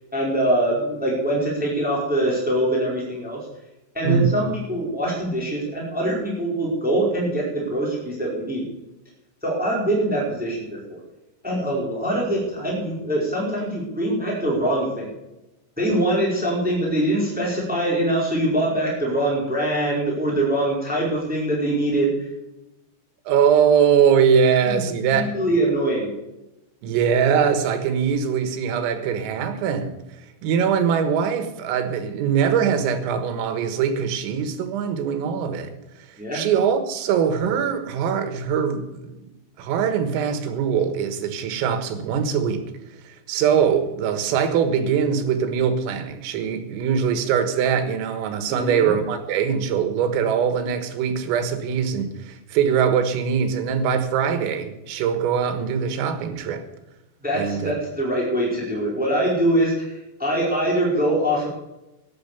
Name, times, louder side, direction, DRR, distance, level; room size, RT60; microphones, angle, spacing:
voice 1, 0.1-3.4 3.9-8.6 9.4-10.6 10.9-11.0 11.4-15.1 15.8-22.1 24.6-24.7 25.1-26.1 36.2-36.4 48.5-48.9 57.2-59.9 60.2-61.5, right 1 dB, ahead, -3 dB, 4.2 m, -23 dB
voice 2, 23.3-25.3 26.8-30.0 30.4-35.7 36.0-36.1 36.3-39.2 39.6-42.6 43.1-56.7 57.3-57.7, right 7 dB, 90° right, 8 dB, 4.1 m, -22 dB
14.0 x 10.5 x 6.8 m, 0.94 s
omnidirectional pair, 5.8 m